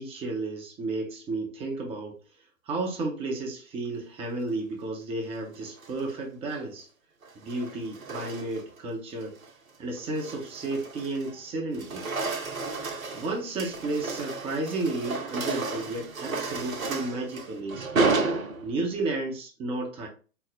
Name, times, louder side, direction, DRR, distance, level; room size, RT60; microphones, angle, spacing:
voice 1, 0.0-2.2 2.7-6.9 7.3-9.4 9.8-12.1 13.1-17.8 18.6-20.1, right 2 dB, 15° right, 1 dB, 0.7 m, -32 dB
sound 1, 5.6-6.1 7.2-8.8 9.2-9.5 10.0-11.4 11.7-19.0, right 3 dB, 75° right, 0.9 m, -32 dB
4.4 x 2.1 x 4.0 m, 0.37 s
figure-of-eight pair, 110°, 41 cm